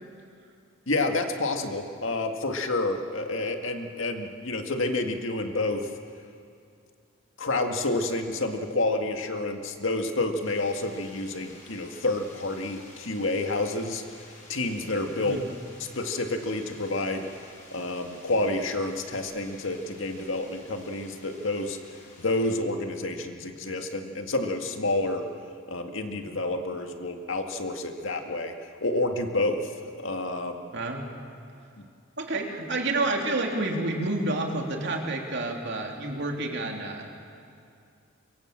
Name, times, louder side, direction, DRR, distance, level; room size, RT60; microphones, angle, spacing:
voice 1, 0.9-5.9 7.4-14.0 14.5-15.4 15.8-17.3 17.7-21.8 22.2-25.3 25.7-30.7, left 2 dB, 70° left, 4 dB, 2.0 m, -29 dB
sound 1, 10.4-22.6, left 2 dB, 40° left, 4.9 m, -51 dB
voice 2, 15.2-15.5 30.7-31.0 32.2-37.1, right 2 dB, 60° right, 1 dB, 3.2 m, -29 dB
24.0 x 23.0 x 7.6 m, 2.5 s
head